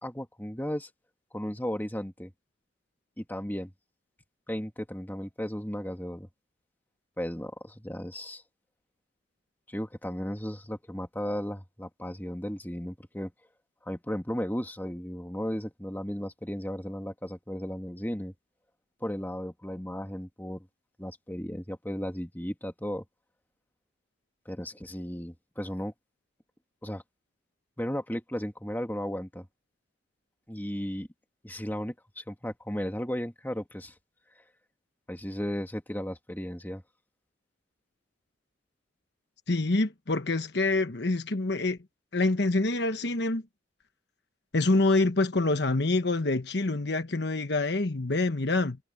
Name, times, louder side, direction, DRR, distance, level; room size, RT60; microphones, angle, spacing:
voice 1, 0.0-0.9 1.3-2.3 3.2-3.7 4.5-6.3 7.2-8.4 9.7-13.3 13.9-18.3 19.0-20.7 21.0-23.0 24.5-25.9 26.8-27.0 27.8-29.5 30.5-31.1 31.4-33.9 35.1-36.8, equal, 10° left, 2.2 m, -35 dB
voice 2, 39.5-41.8 42.1-43.4 44.5-48.8, left 2 dB, 60° left, 1.2 m, -26 dB
head